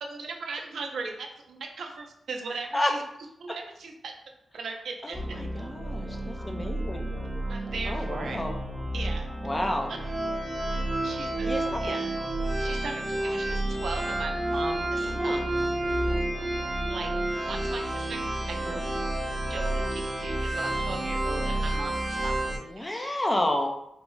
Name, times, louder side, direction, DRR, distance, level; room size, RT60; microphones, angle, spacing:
voice 1, 0.0-3.0 3.4-4.1 4.5-5.2 7.5-8.4 8.9-9.2 9.9-10.0 10.7-11.5 11.8-12.1 12.6-15.4 16.9-19.0 19.5-19.8 20.2-23.2, right 4 dB, 80° right, 2 dB, 0.4 m, -38 dB
voice 2, 5.0-7.1 7.9-8.5 9.4-9.9 11.5-11.9 15.1-15.4 18.6-18.8 22.6-23.7, left 1 dB, 25° left, 3 dB, 0.5 m, -30 dB
sound 1, 5.1-22.6, right 1 dB, 30° right, 0.6 m, -30 dB
3.5 x 2.0 x 3.0 m, 0.80 s
cardioid pair, 65°, 0 cm